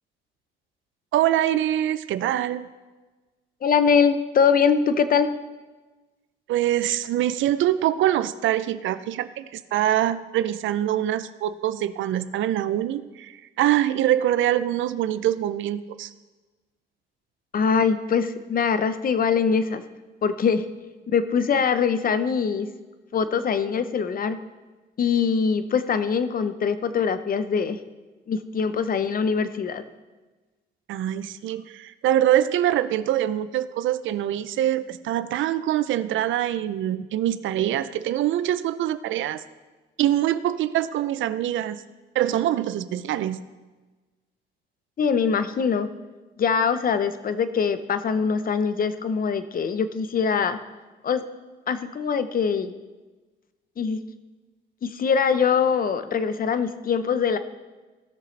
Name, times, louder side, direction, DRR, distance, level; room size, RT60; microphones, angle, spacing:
voice 1, 1.1-2.7 6.5-16.1 30.9-39.4 40.0-41.8 42.1-43.4, right 12 dB, 75° right, 14 dB, 0.5 m, -24 dB
voice 2, 3.6-5.3 17.5-19.8 20.2-20.6 21.1-22.7 23.1-24.4 25.0-27.8 28.3-29.8 45.0-45.9 46.4-50.6 51.0-51.2 51.7-52.7 53.8-54.0 54.8-57.4, left 6 dB, 45° left, 11 dB, 0.7 m, -23 dB
16.5 x 6.6 x 3.3 m, 1.2 s
cardioid pair, 90°, 20 cm